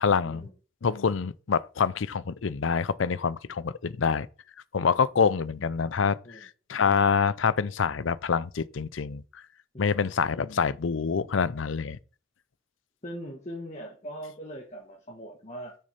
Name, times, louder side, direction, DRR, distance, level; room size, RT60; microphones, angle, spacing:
voice 1, 0.0-0.4 0.8-4.3 4.7-9.2 9.8-12.0, left 5 dB, 80° left, 0.5 m, -26 dB
voice 2, 9.7-10.1 13.0-15.7, equal, 35° left, 1.6 m, -41 dB
6.6 x 6.5 x 4.1 m
head